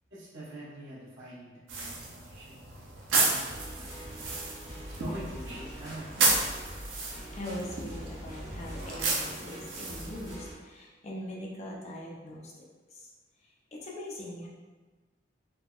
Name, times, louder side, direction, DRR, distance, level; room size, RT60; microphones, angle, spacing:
voice 1, 0.1-2.6 3.2-4.6 4.8-6.3, right 1 dB, 65° right, -9 dB, 1.0 m, -45 dB
sound 1, 1.7-10.4, right 3 dB, 85° right, 0.5 m, -32 dB
sound 2, 3.4-10.5, equal, 20° right, 0.9 m, -44 dB
voice 2, 7.3-12.5 12.9-13.1 13.4-14.5, left 1 dB, 35° left, -3 dB, 0.5 m, -41 dB
3.5 x 2.0 x 2.3 m, 1.3 s
head